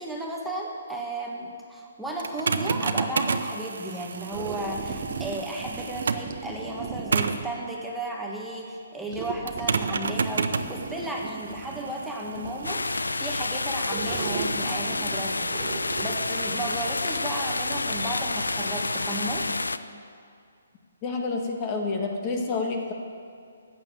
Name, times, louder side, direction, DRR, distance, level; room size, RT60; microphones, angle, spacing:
voice 1, 0.0-15.5 16.0-19.5, right 1 dB, 5° right, -3 dB, 1.5 m, -34 dB
sound 1, 2.2-6.4 7.1-7.5 9.5-19.2, right 5 dB, 65° right, 0.7 m, -33 dB
sound 2, 4.3-7.7 9.1-12.9 13.9-16.8, right 6 dB, 35° right, 0.9 m, -37 dB
sound 3, 12.6-19.8, left 3 dB, 85° left, 0.5 m, -29 dB
voice 2, 21.0-22.9, left 3 dB, 30° left, 2 dB, 1.5 m, -28 dB
14.0 x 9.0 x 7.2 m, 2.3 s
figure-of-eight pair, 140°, 0 cm